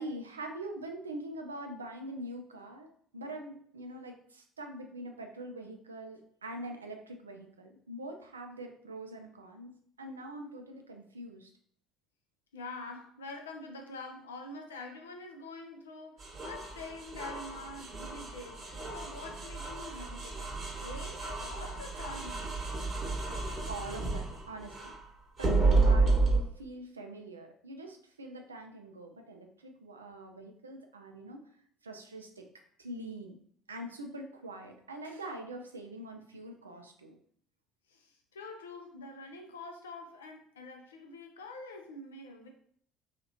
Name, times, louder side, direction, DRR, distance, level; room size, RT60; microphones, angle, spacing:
voice 1, 0.0-9.7 10.0-11.5 23.1-25.0 25.4-31.4 31.8-32.5 32.8-33.4 33.7-37.1, right 1 dB, 90° right, 4 dB, 0.3 m, -44 dB
voice 2, 12.5-18.6 18.9-20.4 20.8-22.5 37.9-42.5, left 2 dB, 80° left, 3 dB, 0.4 m, -45 dB
sound 1, 16.2-25.0 25.4-26.4, right 3 dB, 35° right, 1.0 m, -31 dB
2.9 x 2.4 x 2.7 m, 0.62 s
figure-of-eight pair, 55°, 0 cm